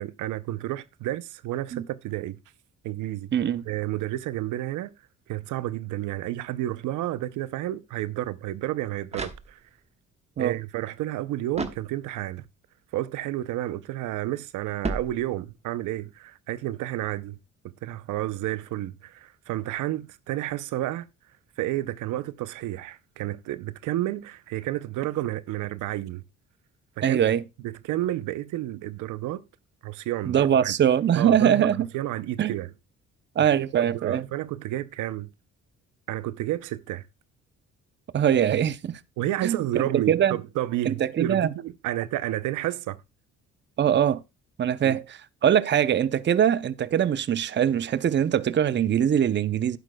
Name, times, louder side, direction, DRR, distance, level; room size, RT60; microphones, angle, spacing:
voice 1, 0.0-2.4 2.8-3.3 3.7-4.9 5.3-9.6 10.4-12.4 12.9-17.4 17.8-21.1 21.6-26.2 27.0-27.2 27.6-29.4 29.8-30.7 31.2-32.7 33.4-33.5 33.8-35.3 36.1-37.0 39.2-43.0 44.8-45.0, right 14 dB, 85° right, 0.6 m, -31 dB
voice 2, 3.3-3.6 10.4-10.6 27.0-27.4 30.3-31.9 32.4-32.5 33.4-34.3 38.1-39.0 39.4-39.6 40.1-40.4 40.9-41.5 43.8-44.2 44.6-49.8, right 9 dB, 40° right, 0.6 m, -22 dB
sound 1, 9.1-10.0 11.5-12.4 14.8-15.7, right 3 dB, 20° right, 1.3 m, -35 dB
11.5 x 9.7 x 2.2 m
cardioid pair, 90°, 30 cm